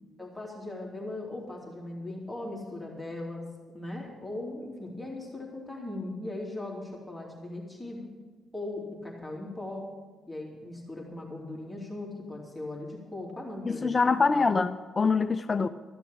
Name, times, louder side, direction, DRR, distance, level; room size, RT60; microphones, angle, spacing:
voice 1, 0.2-3.5 3.7-8.1 8.5-9.9 10.3-14.0 14.3-14.6, left 2 dB, 5° left, -3 dB, 3.0 m, -39 dB
voice 2, 13.7-15.7, left 4 dB, 30° left, 10 dB, 0.5 m, -25 dB
14.0 x 7.0 x 8.8 m, 1.3 s
cardioid pair, 90°, 0 cm